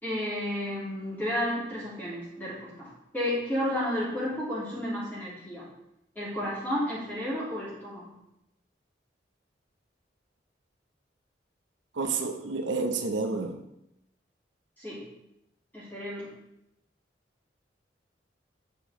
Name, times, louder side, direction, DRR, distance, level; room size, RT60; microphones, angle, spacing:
voice 1, 0.0-5.6 6.1-8.1 14.8-15.0 15.7-16.3, left 1 dB, 10° left, -8 dB, 3.0 m, -32 dB
voice 2, 11.9-13.6, right 4 dB, 80° right, 6 dB, 0.6 m, -30 dB
8.0 x 5.1 x 3.7 m, 0.84 s
head